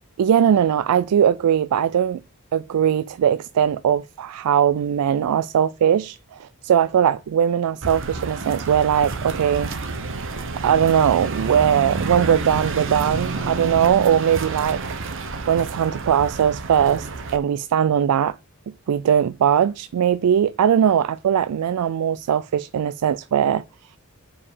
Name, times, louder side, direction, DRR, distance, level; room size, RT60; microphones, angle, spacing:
voice 1, 0.2-2.2 2.5-9.7 10.6-14.8 15.5-18.4 18.9-23.6, right 9 dB, 85° right, 0.3 m, -20 dB
sound 1, 7.8-17.4, right 3 dB, 60° right, 1.0 m, -29 dB
5.3 x 4.7 x 4.9 m
head